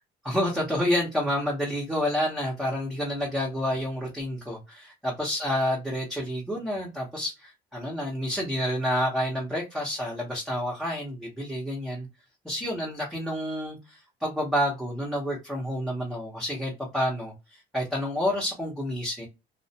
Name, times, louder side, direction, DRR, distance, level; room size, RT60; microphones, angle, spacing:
voice 1, 0.2-12.1 12.4-17.3 17.7-19.3, equal, ahead, 0.8 m, -29 dB
2.4 x 2.0 x 2.7 m
cardioid pair, 110°, 17 cm